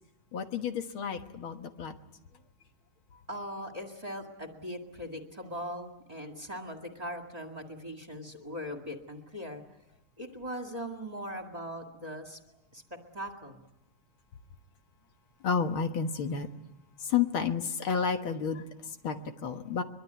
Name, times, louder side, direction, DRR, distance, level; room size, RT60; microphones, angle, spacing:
voice 1, 0.3-2.0 15.4-16.5 17.0-19.8, left 6 dB, 75° left, 6 dB, 2.3 m, -31 dB
voice 2, 3.3-9.6 10.2-12.4 12.7-12.8 13.1-13.6, equal, 20° right, 3 dB, 2.1 m, -40 dB
23.5 x 23.5 x 9.3 m, 0.93 s
omnidirectional pair, 2.3 m